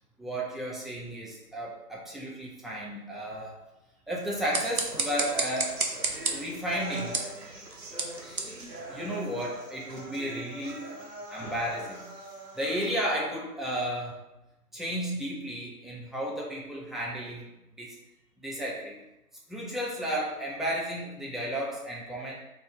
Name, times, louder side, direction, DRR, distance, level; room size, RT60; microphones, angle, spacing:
voice 1, 0.2-3.6 4.1-5.8 6.3-7.2 8.2-8.5 8.9-11.0 11.3-12.1 12.6-14.2 14.7-17.5 17.8-18.0 18.4-18.9 19.5-22.3, equal, ahead, -5 dB, 0.4 m, -33 dB
sound 1, 4.3-9.5, right 3 dB, 65° right, 0.6 m, -34 dB
sound 2, 4.9-12.9, right 1 dB, 90° right, 0.9 m, -43 dB
Breathing, 11.3-13.0, equal, 40° right, 0.9 m, -49 dB
3.1 x 2.3 x 3.5 m, 0.94 s
figure-of-eight pair, 180°, 47 cm